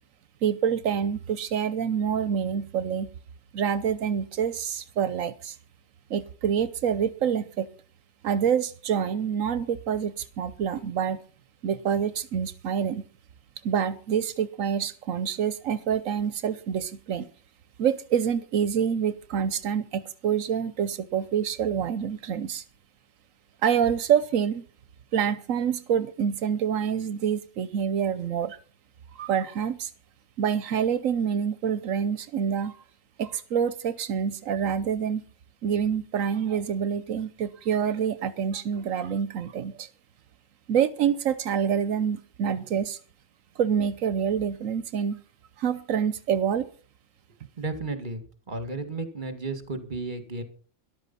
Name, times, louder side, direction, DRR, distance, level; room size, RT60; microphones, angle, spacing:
voice 1, 0.4-3.1 3.5-5.6 6.1-7.7 8.2-11.2 11.6-13.1 13.6-17.3 17.8-22.6 23.6-24.6 25.1-28.6 29.1-29.9 30.4-32.8 33.2-35.2 35.6-39.9 40.7-43.0 43.6-45.2 45.6-46.7, right 8 dB, 85° right, 14 dB, 1.2 m, -27 dB
voice 2, 47.6-48.2 48.5-50.4, right 3 dB, 40° right, 8 dB, 2.3 m, -33 dB
13.5 x 12.0 x 5.7 m, 0.41 s
omnidirectional pair, 1.4 m